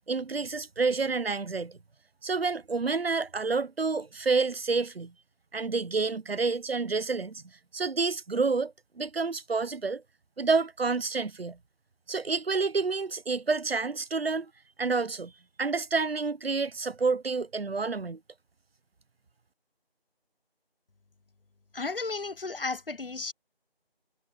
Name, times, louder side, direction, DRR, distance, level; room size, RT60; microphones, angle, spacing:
voice 1, 0.1-1.8 2.2-5.1 5.5-7.4 7.7-10.0 10.4-11.6 12.1-14.5 14.8-15.3 15.6-18.2, right 4 dB, 70° right, 0.7 m, -29 dB
voice 2, 21.7-23.3, left 3 dB, 60° left, 0.7 m, -33 dB
figure-of-eight pair, 180°, 31 cm